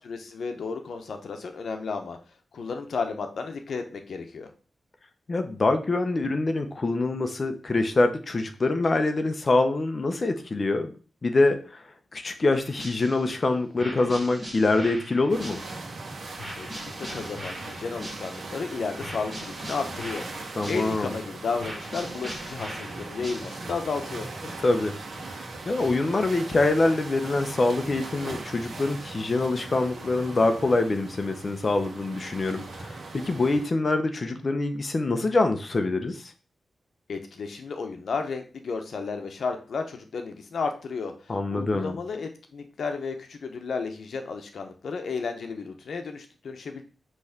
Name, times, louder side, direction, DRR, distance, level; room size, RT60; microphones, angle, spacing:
voice 1, 0.0-2.2 2.5-4.5 16.5-20.3 20.7-24.3 37.1-46.8, left 4 dB, 65° left, 5 dB, 1.0 m, -33 dB
voice 2, 5.3-10.9 11.2-11.8 12.1-15.6 20.6-21.2 24.4-24.9 25.3-36.3 41.3-41.9, left 2 dB, 30° left, 7 dB, 0.8 m, -25 dB
sound 1, 12.5-13.4 13.8-16.0 16.4-18.6 19.0-21.2 21.6-23.8, equal, 10° right, 1.9 m, -41 dB
sound 2, 15.3-33.7, right 3 dB, 60° right, 1.4 m, -39 dB
6.2 x 3.2 x 5.9 m, 0.37 s
wide cardioid pair, 175°, 0 cm